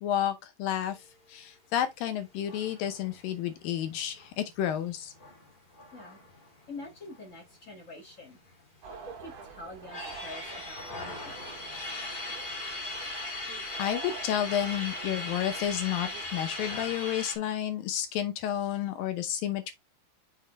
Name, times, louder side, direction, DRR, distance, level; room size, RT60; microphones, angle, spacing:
voice 1, 0.0-5.1 13.8-19.7, left 10 dB, 75° left, 2.3 m, -31 dB
sound 1, 2.4-7.5 7.8-7.9 8.2-9.1 9.6-17.3, left 2 dB, 25° left, 1.2 m, -39 dB
voice 2, 6.7-8.4 8.9-11.4, left 2 dB, 45° left, 1.0 m, -46 dB
sound 2, 8.8-16.9, right 5 dB, 75° right, 3.5 m, -47 dB
6.8 x 6.0 x 3.1 m
omnidirectional pair, 4.6 m